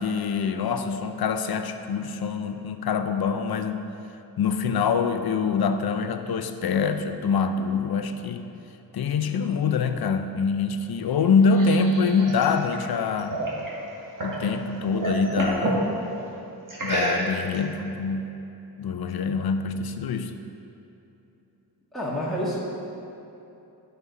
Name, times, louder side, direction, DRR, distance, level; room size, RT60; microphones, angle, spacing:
voice 1, 0.0-3.9 4.4-8.4 8.9-13.4 14.2-15.9 16.8-18.4 18.8-20.3, left 5 dB, 65° left, 8 dB, 0.6 m, -25 dB
sound 1, 11.1-14.4 14.8-15.8 16.7-17.6, right 2 dB, 50° right, 2.2 m, -30 dB
voice 2, 21.9-22.6, equal, ahead, -7 dB, 1.6 m, -28 dB
13.0 x 5.3 x 4.1 m, 2.9 s
cardioid pair, 70°, 40 cm